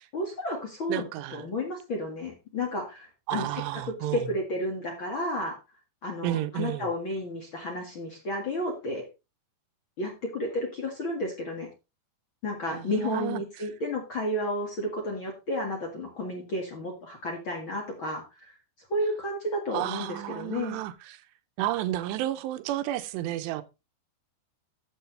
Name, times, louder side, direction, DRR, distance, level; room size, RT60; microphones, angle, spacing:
voice 1, 0.1-5.6 6.0-9.0 10.0-11.7 12.4-18.6 18.9-20.8, left 1 dB, 50° left, 1.5 m, -32 dB
voice 2, 0.9-1.5 3.3-4.3 6.2-6.9 12.7-13.7 19.7-21.2 21.6-23.6, right 14 dB, 80° right, 2.8 m, -32 dB
12.5 x 7.6 x 3.3 m
omnidirectional pair, 5.1 m